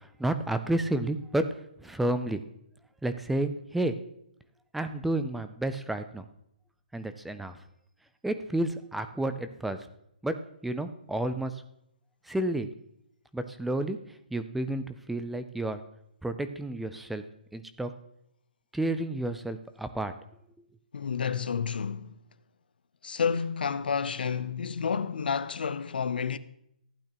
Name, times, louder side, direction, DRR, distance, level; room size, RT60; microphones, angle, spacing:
voice 1, 0.0-1.4 1.8-2.4 3.0-4.0 4.7-6.3 6.9-7.5 8.2-9.8 10.2-10.3 10.6-11.5 12.2-12.7 13.3-14.0 14.3-15.8 16.2-17.2 17.5-17.9 18.7-20.1, right 1 dB, ahead, 0.3 m, -30 dB
voice 2, 20.9-22.1 23.0-26.4, left 6 dB, 75° left, 0.6 m, -30 dB
15.0 x 8.9 x 2.9 m
hypercardioid pair, 165°, 5 cm